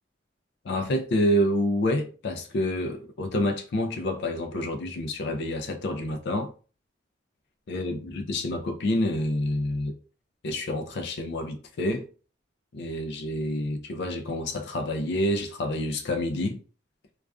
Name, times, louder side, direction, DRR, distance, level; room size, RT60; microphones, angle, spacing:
voice 1, 0.6-6.5 7.7-10.0 10.4-12.1 12.7-16.6, left 1 dB, 65° left, 0.4 m, -28 dB
2.4 x 2.2 x 2.2 m
head